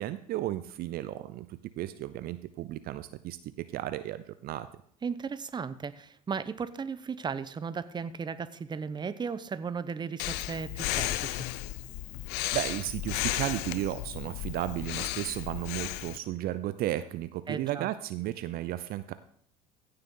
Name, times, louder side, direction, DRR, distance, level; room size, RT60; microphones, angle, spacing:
voice 1, 0.0-1.5 1.8-4.7 12.5-19.1, right 14 dB, 55° right, 13 dB, 0.6 m, -34 dB
voice 2, 5.0-11.5 17.5-17.9, right 6 dB, 25° right, 14 dB, 0.8 m, -36 dB
Breathing, 10.2-16.2, left 16 dB, 60° left, 0.6 m, -34 dB
15.5 x 6.7 x 3.8 m, 0.62 s
hypercardioid pair, 70°, 19 cm